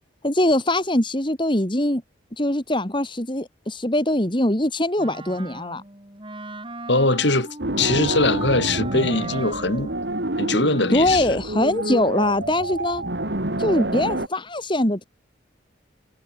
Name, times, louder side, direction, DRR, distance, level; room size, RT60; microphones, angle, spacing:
voice 1, 0.2-2.0 2.4-5.8 10.9-13.0 13.6-15.0, left 1 dB, 25° left, 2.4 m, -22 dB
Wind instrument woodwind instrument, 5.0-11.5, right 2 dB, 25° right, 5.3 m, -37 dB
voice 2, 6.9-7.5 7.8-9.9 10.4-11.2, left 2 dB, 65° left, 3.8 m, -21 dB
sound 1, 7.6-14.3, right 1 dB, 60° right, 2.8 m, -28 dB
head